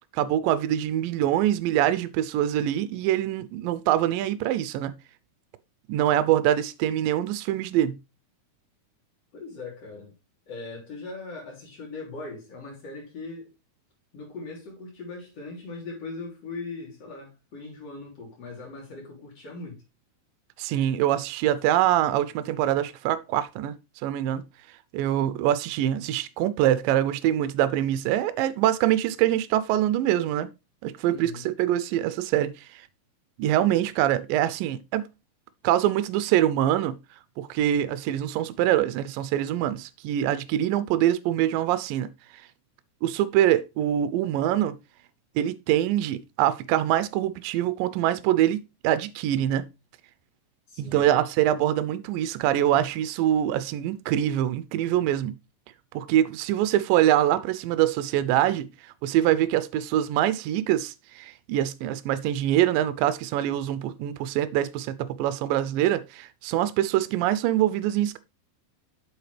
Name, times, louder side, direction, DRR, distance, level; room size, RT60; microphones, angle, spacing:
voice 1, 0.1-5.0 5.9-8.0 20.6-23.7 24.0-24.4 24.9-30.5 30.8-32.5 33.4-35.1 35.6-37.0 37.4-42.1 43.0-44.8 45.4-49.7 50.8-55.3 55.9-58.7 59.0-68.2, right 12 dB, 80° right, 2.1 m, -24 dB
voice 2, 9.3-10.1 10.5-13.5 14.1-19.8 31.1-31.5 50.7-51.1, left 3 dB, 45° left, 3.9 m, -40 dB
7.9 x 6.5 x 3.3 m
omnidirectional pair, 4.3 m